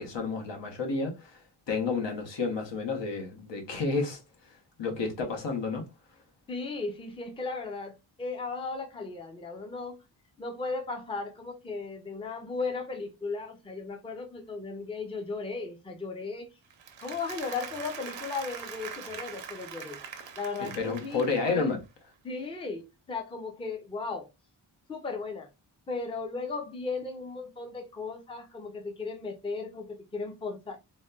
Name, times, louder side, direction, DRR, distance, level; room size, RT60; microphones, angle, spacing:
voice 1, 0.0-4.2 4.8-5.9 20.6-21.8, left 4 dB, 80° left, 1.0 m, -31 dB
voice 2, 6.5-10.0 10.4-16.5 17.0-20.0 20.4-21.7 22.2-24.3 24.9-25.5 25.9-30.8, left 4 dB, 15° left, 0.4 m, -36 dB
Applause, 16.7-21.7, right 7 dB, 90° right, 0.7 m, -43 dB
4.0 x 2.1 x 2.3 m
wide cardioid pair, 160°, 43 cm